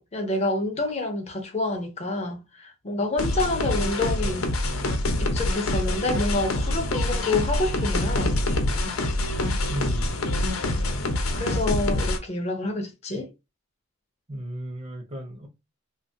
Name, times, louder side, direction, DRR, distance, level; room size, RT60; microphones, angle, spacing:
voice 1, 0.0-4.5 5.2-8.3 11.3-13.3, left 2 dB, 30° left, 0.4 m, -28 dB
sound 1, 3.2-12.2, left 1 dB, 90° left, 0.6 m, -25 dB
voice 2, 9.7-10.1 14.3-15.5, equal, 30° right, 0.5 m, -34 dB
3.1 x 2.2 x 2.6 m
head